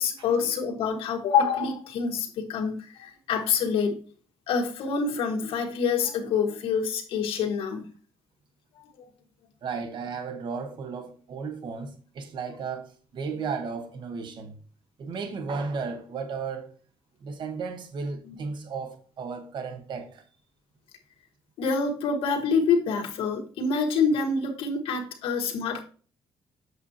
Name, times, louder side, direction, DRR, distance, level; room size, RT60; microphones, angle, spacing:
voice 1, 0.0-4.0 4.5-7.9 8.8-9.1 18.3-18.4 21.6-25.8, left 5 dB, 80° left, 1.5 m, -26 dB
voice 2, 9.6-14.6 15.0-16.7 17.2-20.2, right 5 dB, 55° right, 1.2 m, -34 dB
8.0 x 6.4 x 2.8 m
cardioid pair, 125°, 9 cm